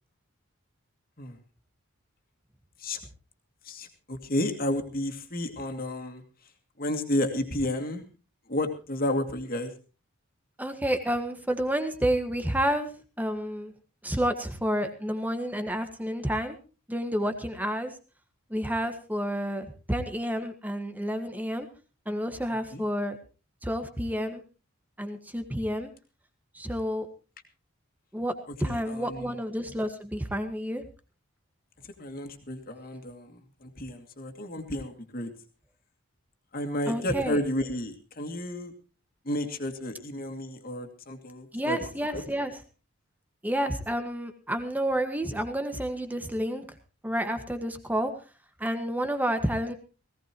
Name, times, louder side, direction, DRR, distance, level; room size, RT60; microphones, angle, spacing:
voice 1, 3.6-6.2 6.8-8.0 8.5-9.7 22.7-22.8 28.6-29.4 31.8-35.3 36.5-38.7 39.2-42.2, left 1 dB, 40° left, 4 dB, 2.5 m, -32 dB
voice 2, 10.6-12.9 13.2-13.7 14.0-16.6 16.9-18.0 18.5-21.7 22.0-23.2 23.6-24.4 25.0-25.9 26.5-27.1 28.1-28.3 28.6-30.8 36.9-37.4 41.5-42.6 43.4-46.6 47.0-48.1 48.6-49.7, equal, 10° right, 8 dB, 1.6 m, -30 dB
19.0 x 17.0 x 3.0 m, 0.33 s
head